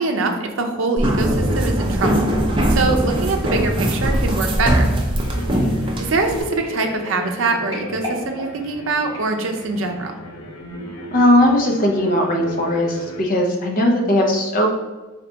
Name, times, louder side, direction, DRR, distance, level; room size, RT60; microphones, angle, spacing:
voice 1, 0.0-2.3 2.7-4.9 6.0-10.2, right 3 dB, 65° right, 4 dB, 0.6 m, -23 dB
sound 1, 1.0-6.4, right 1 dB, 25° right, 0.5 m, -20 dB
sound 2, 4.9-9.9 10.5-10.7 11.0-11.1, equal, 20° left, 1.5 m, -38 dB
sound 3, 5.2-13.2, equal, 80° left, 0.6 m, -35 dB
voice 2, 11.1-14.7, left 1 dB, 40° left, 1 dB, 0.7 m, -18 dB
4.0 x 2.8 x 3.4 m, 1.2 s
head